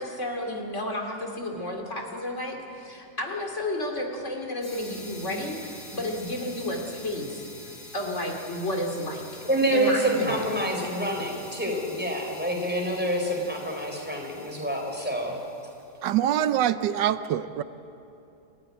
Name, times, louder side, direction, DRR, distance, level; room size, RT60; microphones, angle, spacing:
voice 1, 0.0-9.2 9.7-10.4, left 1 dB, 45° left, 1 dB, 3.0 m, -32 dB
sound 1, 4.6-15.9, left 1 dB, 60° left, 7.9 m, -46 dB
voice 2, 9.4-15.4, right 1 dB, 5° right, 1 dB, 4.7 m, -27 dB
voice 3, 16.0-17.6, right 11 dB, 90° right, 13 dB, 1.4 m, -24 dB
28.5 x 15.5 x 9.9 m, 2.7 s
omnidirectional pair, 1.8 m